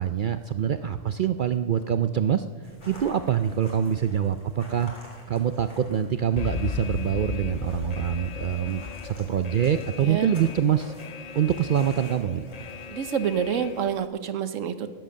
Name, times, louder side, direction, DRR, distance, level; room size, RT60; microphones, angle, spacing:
voice 1, 0.0-2.4 2.9-4.9 5.3-10.9 11.4-12.4, right 9 dB, 65° right, 10 dB, 0.5 m, -25 dB
sound 1, 2.6-12.9, left 1 dB, 40° left, 3.2 m, -50 dB
Alarm, 6.4-14.1, left 7 dB, 60° left, 0.4 m, -36 dB
voice 2, 12.9-15.0, right 8 dB, 85° right, 11 dB, 1.3 m, -28 dB
19.5 x 7.9 x 6.3 m, 1.5 s
omnidirectional pair, 1.3 m